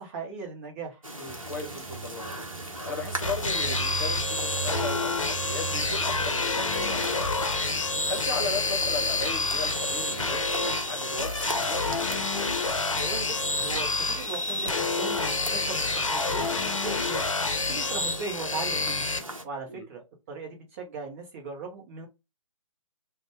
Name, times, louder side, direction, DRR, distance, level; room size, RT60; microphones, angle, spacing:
voice 1, 0.0-1.0 8.4-8.6 13.0-17.2 17.7-19.1 19.4-22.1, right 4 dB, 25° right, 0.8 m, -38 dB
sound 1, 1.0-19.4, right 1 dB, 85° right, 0.8 m, -40 dB
voice 2, 1.2-2.5 2.9-7.5 7.9-11.9 19.7-19.9, left 3 dB, 40° left, 0.9 m, -36 dB
sound 2, 1.3-10.4, right 8 dB, 50° right, 0.5 m, -40 dB
sound 3, 3.2-19.2, left 3 dB, 70° left, 0.6 m, -28 dB
2.6 x 2.2 x 3.2 m
figure-of-eight pair, 135°, 17 cm